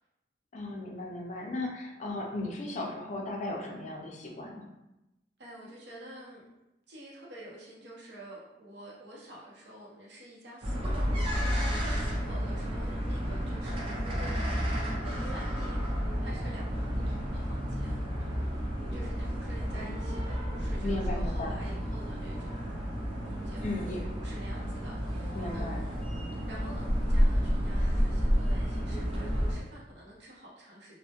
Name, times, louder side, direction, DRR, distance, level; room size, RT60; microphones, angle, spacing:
voice 1, 0.5-4.7 19.7-19.9 20.8-21.6 23.6-24.0 25.3-25.8, left 2 dB, 40° left, 0 dB, 0.4 m, -36 dB
voice 2, 5.4-6.4 6.9-11.0 11.7-18.0 18.9-22.7 23.3-26.0 26.5-31.0, right 1 dB, 70° right, -4 dB, 0.7 m, -49 dB
sound 1, 10.6-29.5, equal, 30° right, 0.5 m, -31 dB
2.1 x 2.1 x 2.8 m, 0.94 s
head